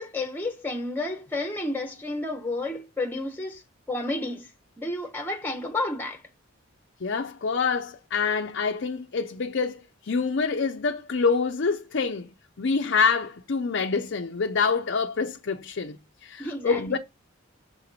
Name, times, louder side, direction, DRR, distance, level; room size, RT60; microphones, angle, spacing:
voice 1, 0.0-3.6 3.9-4.5 4.8-6.2 16.4-17.0, left 2 dB, 10° left, 0.8 m, -31 dB
voice 2, 7.0-12.3 12.6-17.0, left 5 dB, 55° left, 0.5 m, -26 dB
6.9 x 4.2 x 4.0 m
head